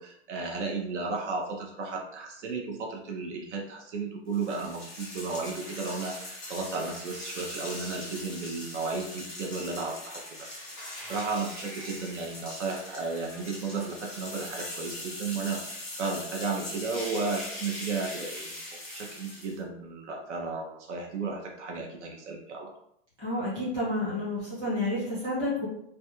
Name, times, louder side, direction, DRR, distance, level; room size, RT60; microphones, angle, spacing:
voice 1, 0.0-10.6 11.1-18.6 18.9-22.7, right 4 dB, 80° right, 1 dB, 0.7 m, -34 dB
sound 1, 4.3-19.6, left 1 dB, 10° left, 0.5 m, -41 dB
voice 2, 23.2-25.7, left 1 dB, 15° right, -10 dB, 1.1 m, -30 dB
2.4 x 2.2 x 2.8 m, 0.73 s
supercardioid pair, 180°, 35 cm